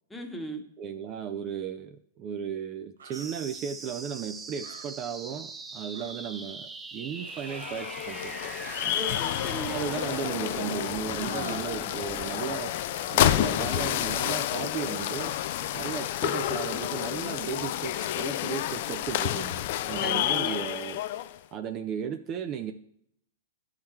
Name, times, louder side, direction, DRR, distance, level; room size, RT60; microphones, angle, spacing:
voice 1, 0.1-0.6 8.9-9.9 11.2-11.6 19.9-20.6, right 1 dB, 5° left, 3 dB, 1.1 m, -37 dB
voice 2, 0.8-8.3 8.8-9.0 9.7-12.7 13.1-15.3 15.7-21.0 21.5-22.7, right 8 dB, 35° right, 7 dB, 0.5 m, -35 dB
sound 1, 3.0-3.3 4.6-4.9 5.9-6.1 6.4-6.5 7.5-7.7 8.6-8.9 10.0-10.2 11.3-11.6 12.9-13.2 15.2-15.5 18.0-18.2, right 6 dB, 85° right, 0.8 m, -47 dB
sound 2, 3.1-14.1, right 4 dB, 20° right, 0.8 m, -42 dB
sound 3, 7.3-21.4, left 13 dB, 55° left, 0.4 m, -29 dB
11.5 x 3.8 x 4.4 m, 0.71 s
hypercardioid pair, 120°, 0 cm